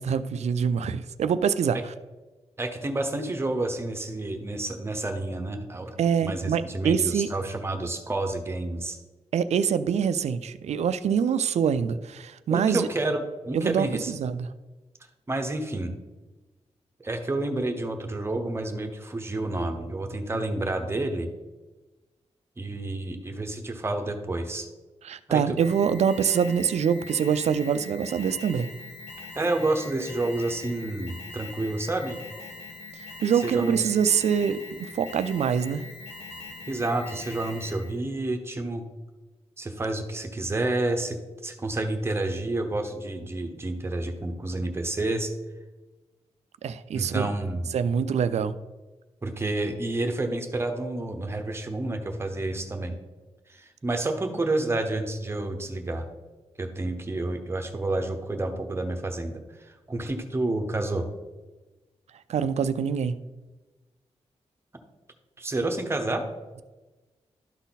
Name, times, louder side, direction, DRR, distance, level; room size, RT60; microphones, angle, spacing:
voice 1, 0.0-1.8 6.0-7.3 9.3-12.9 13.5-14.5 25.0-28.7 33.2-35.8 46.6-47.3 47.7-48.5 62.3-63.1, right 7 dB, 75° right, 13 dB, 0.4 m, -25 dB
voice 2, 2.6-9.0 12.5-14.1 15.3-15.9 17.0-21.3 22.6-24.7 25.3-25.6 29.3-32.2 33.4-33.7 36.7-38.9 39.6-41.2 41.4-45.3 46.9-47.7 49.2-52.9 53.5-56.0 56.6-61.0 65.4-66.2, right 2 dB, 20° right, 5 dB, 0.9 m, -29 dB
Alarm, 25.6-38.0, left 3 dB, 75° left, 1.5 m, -42 dB
12.5 x 4.1 x 4.1 m, 1.2 s
wide cardioid pair, 125°, 11 cm